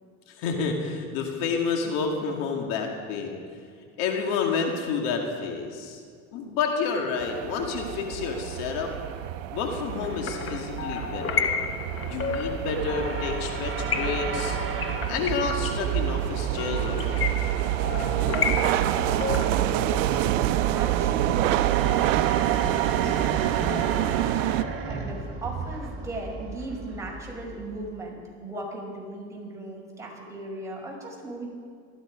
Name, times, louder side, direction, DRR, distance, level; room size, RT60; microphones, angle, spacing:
voice 1, 0.3-3.4 4.0-6.0 6.3-8.9 9.5-11.6 12.0-14.6 15.1-17.3, left 5 dB, 75° left, 2 dB, 2.4 m, -29 dB
sound 1, 7.2-24.6, right 14 dB, 85° right, 0.7 m, -27 dB
sound 2, 10.0-19.8, left 6 dB, 35° left, 1.2 m, -32 dB
sound 3, 11.7-28.0, right 3 dB, 35° right, 3.8 m, -36 dB
voice 2, 19.0-31.5, right 1 dB, 10° right, -3 dB, 5.6 m, -38 dB
19.0 x 13.5 x 5.2 m, 2.1 s
supercardioid pair, 100°, 37 cm